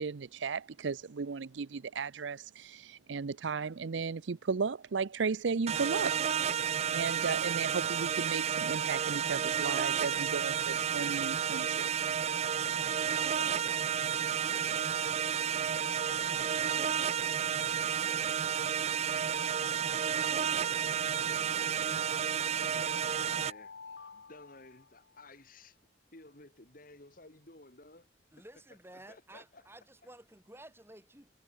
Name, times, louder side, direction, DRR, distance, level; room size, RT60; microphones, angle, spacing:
voice 1, 0.0-6.2 6.7-11.9, right 5 dB, 85° right, 0.6 m, -35 dB
sound 1, 5.7-23.5, right 8 dB, 35° right, 0.4 m, -31 dB
voice 2, 13.1-19.8 20.4-23.7 24.1-25.8 26.1-28.1 29.1-29.6, left 2 dB, 50° left, 2.9 m, -55 dB
sound 2, 19.9-20.9 22.0-25.2, left 4 dB, 90° left, 1.2 m, -52 dB
voice 3, 28.3-31.3, right 1 dB, 15° right, 7.6 m, -53 dB
head